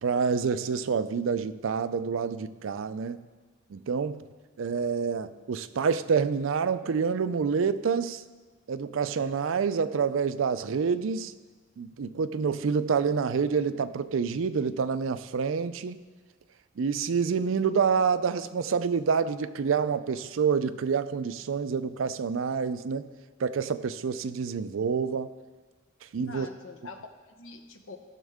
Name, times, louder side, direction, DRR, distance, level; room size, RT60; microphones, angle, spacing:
voice 1, 0.0-3.2 3.7-4.2 4.6-8.2 8.7-11.3 11.8-16.0 16.8-23.0 23.4-25.3 26.1-26.5, right 6 dB, 80° right, 13 dB, 0.4 m, -27 dB
voice 2, 26.1-28.0, left 3 dB, 80° left, 5 dB, 1.0 m, -45 dB
16.0 x 6.3 x 3.5 m, 1.4 s
head